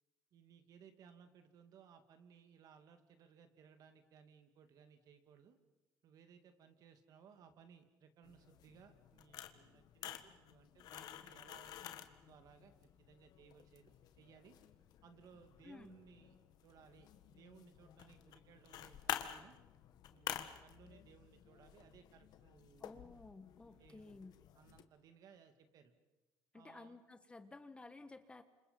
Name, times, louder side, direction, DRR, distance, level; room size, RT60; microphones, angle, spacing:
voice 1, 0.3-5.6 6.0-12.7 13.0-14.6 15.0-16.4 16.6-19.5 20.1-23.2 23.8-24.1 24.5-25.9 26.5-27.0, right 7 dB, 55° right, 7 dB, 2.6 m, -63 dB
sound 1, 8.2-24.8, left 11 dB, 65° left, 1.6 m, -50 dB
voice 2, 15.6-16.0 22.8-24.4 26.5-28.4, left 3 dB, 15° left, 10 dB, 1.3 m, -54 dB
30.0 x 27.5 x 5.5 m, 1.1 s
cardioid pair, 125°, 7 cm